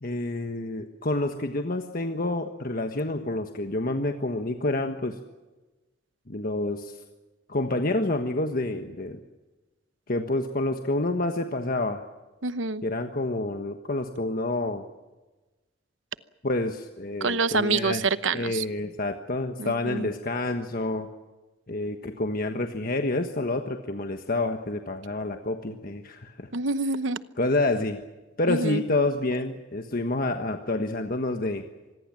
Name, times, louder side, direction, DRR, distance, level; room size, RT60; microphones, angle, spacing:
voice 1, 0.0-5.2 6.3-6.9 7.5-9.2 10.1-12.0 12.8-14.8 16.4-18.0 18.3-21.1 21.7-26.5 27.4-28.0 28.4-31.6, left 2 dB, 50° left, 5 dB, 1.4 m, -28 dB
voice 2, 12.4-12.8 17.2-18.6 19.6-20.1 26.5-27.2 28.5-28.8, right 4 dB, 85° right, 14 dB, 1.0 m, -27 dB
25.5 x 20.5 x 7.6 m, 1.1 s
head